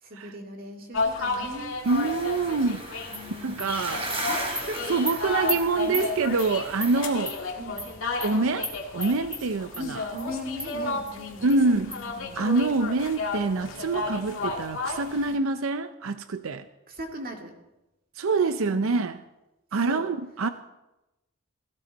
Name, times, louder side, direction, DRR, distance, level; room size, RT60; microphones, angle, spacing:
voice 1, 0.0-1.8 3.1-3.8 4.2-5.3 5.8-6.1 7.6-7.9 9.7-12.4 16.9-17.5 18.6-18.9 19.7-20.1, equal, 45° right, 2 dB, 2.3 m, -39 dB
sound 1, 0.9-15.4, left 3 dB, 75° left, 2.1 m, -33 dB
sound 2, 1.8-7.1, right 2 dB, 30° right, 2.9 m, -37 dB
voice 2, 1.9-2.9 3.4-4.0 4.9-7.4 8.2-10.0 11.4-11.9 12.4-16.6 18.2-19.2 19.7-20.5, right 3 dB, 90° right, 11 dB, 0.6 m, -25 dB
Animal, 3.1-3.2 3.6-3.7 4.1-4.2 4.5-4.6 5.1-5.2 5.5-5.6 5.9-6.1 6.4-6.5 6.8-6.9 7.2-7.4 7.8-7.9 8.2-8.3 8.6-8.7 9.0-9.4 9.7-9.8 10.2-10.3 10.6-10.7 11.1-11.2 11.5-11.6 11.9-12.0, left 1 dB, 5° right, 2.3 m, -32 dB
17.5 x 15.5 x 4.1 m, 0.97 s
head